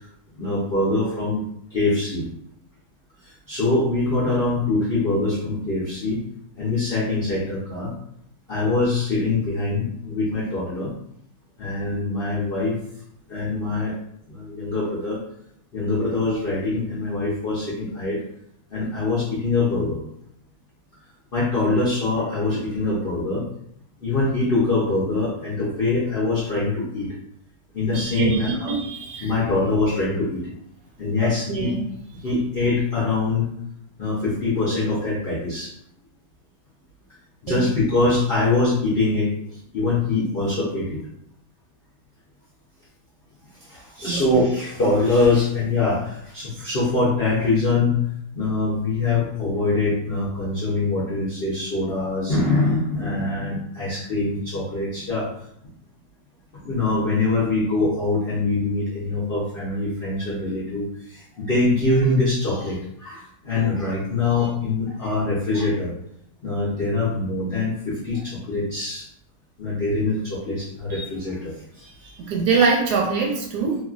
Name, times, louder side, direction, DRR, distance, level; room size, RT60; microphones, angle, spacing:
voice 1, 0.4-1.4 1.7-2.3 3.5-6.2 6.6-7.9 8.5-10.9 11.6-12.8 13.3-13.9 14.3-15.2 15.7-18.2 18.7-20.0 21.3-23.4 24.0-27.1 27.7-28.7 29.2-30.5 31.0-31.7 32.2-33.5 34.0-35.7 37.4-39.3 39.7-41.0 43.7-48.0 48.3-55.3 56.6-65.9 66.4-69.0 69.6-71.8, left 3 dB, 60° left, -8 dB, 0.6 m, -23 dB
voice 2, 27.9-29.3 31.2-31.8 37.5-37.7 44.0-44.2 70.9-71.0 71.8-73.8, right 5 dB, 70° right, 0 dB, 1.1 m, -24 dB
3.1 x 2.3 x 2.4 m, 0.73 s
omnidirectional pair, 1.9 m